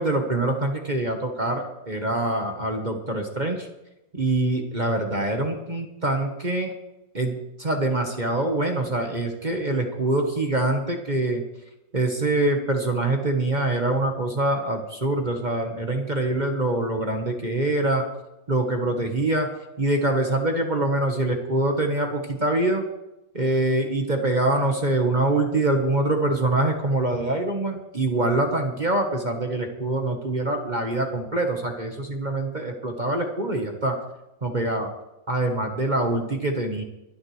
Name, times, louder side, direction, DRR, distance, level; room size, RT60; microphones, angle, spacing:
voice 1, 0.0-3.7 4.2-6.7 7.1-11.4 11.9-18.0 18.5-19.5 19.8-22.8 23.3-34.0 34.4-34.9 35.3-36.8, right 2 dB, 25° right, 3 dB, 1.2 m, -24 dB
24.5 x 9.9 x 3.3 m, 0.94 s
omnidirectional pair, 2.1 m